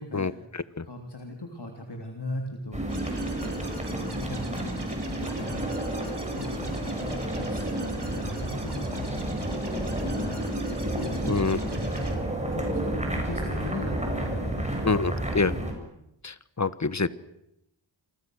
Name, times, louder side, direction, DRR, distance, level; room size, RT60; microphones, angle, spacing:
voice 1, 0.1-0.9 11.3-11.6 14.8-15.5 16.2-17.1, left 4 dB, 35° left, 15 dB, 1.2 m, -27 dB
voice 2, 0.8-5.9 6.3-11.4 11.7-14.9, left 1 dB, 60° left, 2 dB, 3.4 m, -39 dB
sound 1, 2.7-15.7, right 1 dB, 15° right, 7.3 m, -31 dB
sound 2, 2.9-12.2, right 3 dB, 60° right, 4.6 m, -44 dB
29.0 x 24.0 x 6.6 m, 0.82 s
wide cardioid pair, 55°, 46 cm